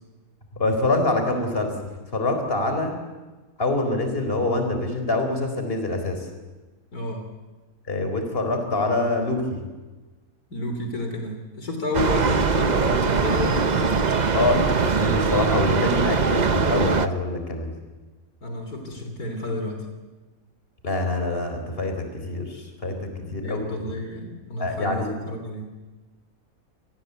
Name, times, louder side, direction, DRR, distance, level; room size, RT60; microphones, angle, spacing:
voice 1, 0.5-1.7 2.1-3.0 3.6-6.3 7.9-9.6 14.3-17.7 20.8-23.6 24.6-25.2, left 2 dB, 35° left, 5 dB, 4.5 m, -25 dB
voice 2, 6.9-7.3 10.5-14.0 18.4-19.9 23.2-25.7, left 2 dB, 70° left, 4 dB, 3.7 m, -31 dB
sound 1, 11.9-17.1, right 5 dB, 35° right, 0.8 m, -22 dB
28.5 x 20.5 x 8.2 m, 1.2 s
omnidirectional pair, 1.6 m